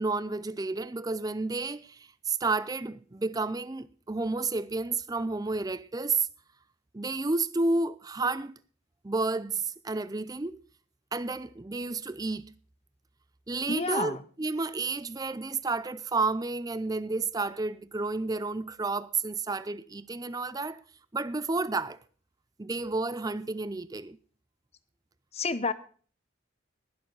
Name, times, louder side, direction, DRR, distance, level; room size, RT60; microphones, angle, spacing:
voice 1, 0.0-6.3 6.9-8.6 9.0-10.6 11.1-12.5 13.5-20.8 21.1-22.0 22.6-24.2, right 3 dB, 20° right, 0.4 m, -31 dB
voice 2, 13.7-14.2 25.3-25.7, left 3 dB, 30° left, 0.8 m, -29 dB
20.0 x 7.2 x 3.9 m
head